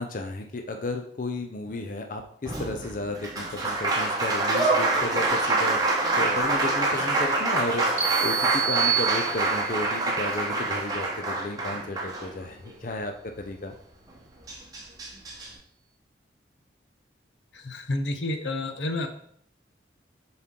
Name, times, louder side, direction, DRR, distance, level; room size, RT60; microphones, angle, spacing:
voice 1, 0.0-5.8 6.2-7.9 8.2-13.7, left 2 dB, 45° left, 5 dB, 0.5 m, -33 dB
Applause, 2.4-12.7 14.1-14.2 14.5-15.5, right 2 dB, 20° right, 1.1 m, -26 dB
sound 1, 8.0-9.8, right 8 dB, 40° right, 1.0 m, -27 dB
voice 2, 17.5-19.1, left 2 dB, 80° left, 7 dB, 0.8 m, -30 dB
7.3 x 4.3 x 3.7 m, 0.65 s
head